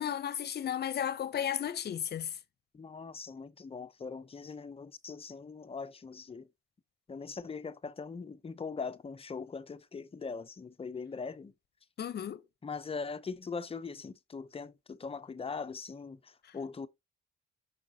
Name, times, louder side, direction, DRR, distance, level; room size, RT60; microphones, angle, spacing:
voice 1, 0.0-2.4 12.0-12.4, left 9 dB, 55° left, 1.0 m, -34 dB
voice 2, 2.7-6.5 7.1-11.5 12.6-16.9, left 5 dB, 30° left, 0.9 m, -41 dB
6.0 x 5.9 x 4.1 m
cardioid pair, 90°, 20 cm